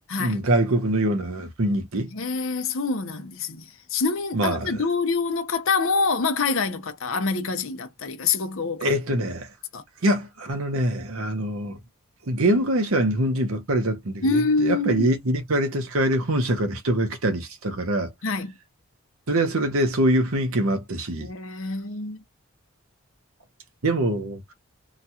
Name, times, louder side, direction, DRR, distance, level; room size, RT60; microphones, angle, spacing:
voice 1, 0.0-2.1 4.3-4.8 8.8-9.5 10.0-11.8 12.2-18.1 19.3-21.3 23.8-24.4, right 1 dB, 70° right, 0.9 m, -24 dB
voice 2, 2.1-3.6 3.9-8.9 9.7-9.8 14.2-15.1 18.2-18.5 21.2-22.2, left 4 dB, 60° left, 0.7 m, -26 dB
3.0 x 2.4 x 2.8 m
head